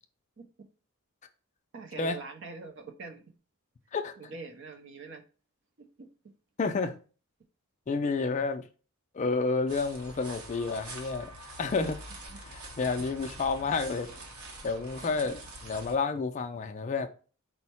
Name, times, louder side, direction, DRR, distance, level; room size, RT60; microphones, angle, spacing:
voice 1, 1.7-3.3 4.2-5.2 5.8-6.1 12.3-12.4 15.0-15.3, right 4 dB, 55° right, 0.5 m, -44 dB
voice 2, 6.6-7.0 7.9-8.6 9.1-11.3 11.6-12.0 12.5-14.1 14.6-17.1, left 4 dB, 35° left, 0.3 m, -30 dB
sound 1, 9.7-16.0, right 1 dB, 85° right, 0.9 m, -45 dB
4.4 x 2.1 x 4.2 m
head